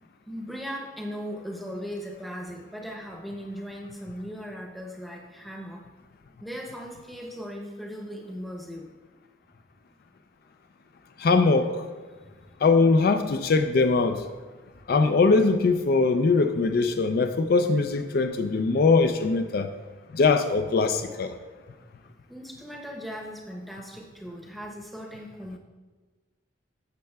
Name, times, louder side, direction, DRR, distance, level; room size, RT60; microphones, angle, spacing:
voice 1, 0.0-5.8 6.4-8.9 12.2-12.5 22.3-25.6, equal, ahead, 0 dB, 0.7 m, -38 dB
voice 2, 11.2-11.8 12.6-14.3 14.9-19.7 20.1-21.3, left 4 dB, 50° left, 7 dB, 0.3 m, -21 dB
12.0 x 6.4 x 2.3 m, 1.3 s
head